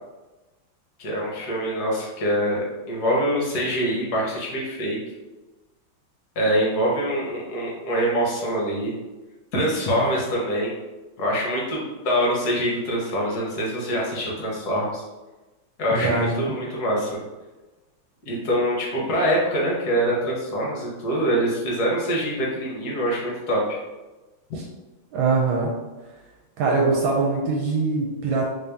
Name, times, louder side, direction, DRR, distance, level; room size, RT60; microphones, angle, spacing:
voice 1, 1.0-5.0 6.4-8.9 9.5-10.7 11.2-15.0 15.8-17.2 18.3-23.8, equal, 60° left, -4 dB, 1.3 m, -24 dB
voice 2, 15.9-16.5 24.6-24.7 25.1-25.7 26.6-28.5, right 3 dB, 80° right, -2 dB, 1.3 m, -23 dB
3.2 x 2.7 x 3.4 m, 1.2 s
omnidirectional pair, 2.2 m